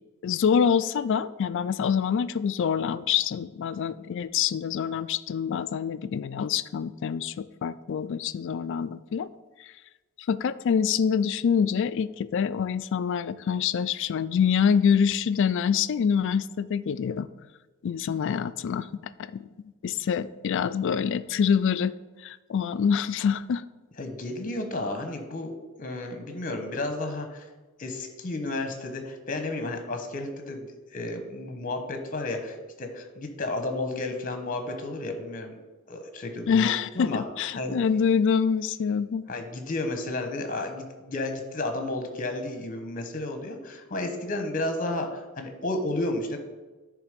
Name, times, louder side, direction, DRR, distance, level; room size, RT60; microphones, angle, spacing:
voice 1, 0.2-9.3 9.6-9.7 10.3-17.3 17.8-19.5 19.8-21.9 22.2-23.6 36.5-39.2, left 7 dB, 55° left, 15 dB, 0.3 m, -26 dB
voice 2, 24.0-27.5 27.8-35.5 35.9-36.7 36.9-37.2 37.5-37.8 39.3-46.4, left 2 dB, 40° left, 6 dB, 1.0 m, -32 dB
10.5 x 3.5 x 5.1 m, 1.2 s
head